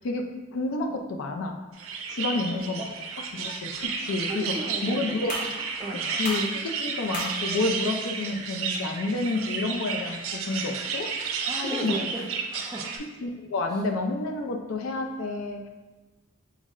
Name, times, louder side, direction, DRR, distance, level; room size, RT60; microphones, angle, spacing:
voice 1, 0.0-1.6 2.1-2.8 3.3-4.4 4.8-5.3 5.6-11.4 11.6-12.0 13.2-15.6, left 2 dB, 90° left, 3 dB, 0.4 m, -30 dB
sound 1, 1.8-13.0, right 5 dB, 85° right, 0.4 m, -32 dB
voice 2, 2.3-2.9 4.0-5.5 5.8-6.1 11.4-13.0, right 1 dB, 20° right, -1 dB, 0.4 m, -36 dB
sound 2, 5.3-10.8, left 1 dB, 40° left, 0.7 m, -42 dB
3.4 x 2.1 x 3.6 m, 1.2 s
head